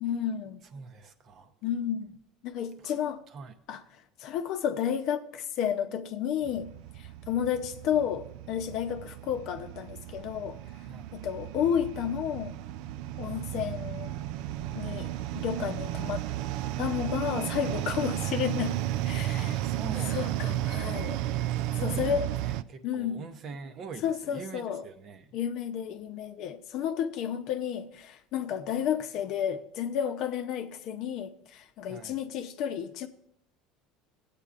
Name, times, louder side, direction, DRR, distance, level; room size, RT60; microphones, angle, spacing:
voice 1, 0.0-0.6 1.6-2.2 2.4-3.2 3.7-10.6 11.1-12.6 13.2-14.2 14.7-16.3 16.8-18.8 19.0-19.6 20.1-21.2 21.7-22.3 22.8-23.3 24.0-24.9 25.3-33.1, left 9 dB, 50° left, 0.7 m, -32 dB
voice 2, 0.7-1.5 2.8-3.5 10.8-11.2 19.3-20.5 21.7-25.4 31.9-32.2, right 5 dB, 40° right, 0.8 m, -43 dB
sound 1, 6.4-22.6, right 13 dB, 65° right, 0.3 m, -33 dB
17.0 x 8.3 x 2.5 m
cardioid pair, 155°, 0 cm